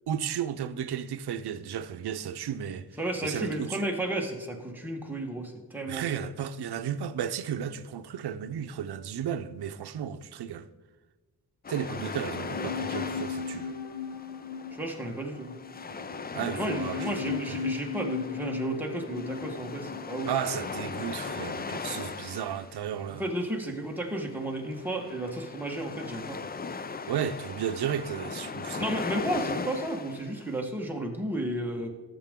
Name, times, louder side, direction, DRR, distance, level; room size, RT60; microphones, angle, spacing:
voice 1, 0.1-2.9 3.2-3.8 5.9-10.7 11.7-13.8 16.3-17.7 20.3-23.2 27.1-29.0, right 9 dB, 85° right, 0.7 m, -34 dB
voice 2, 3.0-6.0 14.8-15.5 16.5-20.3 23.2-26.4 28.8-31.9, right 1 dB, 5° right, 1.4 m, -33 dB
sound 1, 11.6-30.6, left 5 dB, 25° left, 0.4 m, -39 dB
sound 2, 12.2-21.6 21.8-21.9, left 6 dB, 90° left, 0.8 m, -38 dB
17.0 x 7.6 x 3.7 m
wide cardioid pair, 155°, 38 cm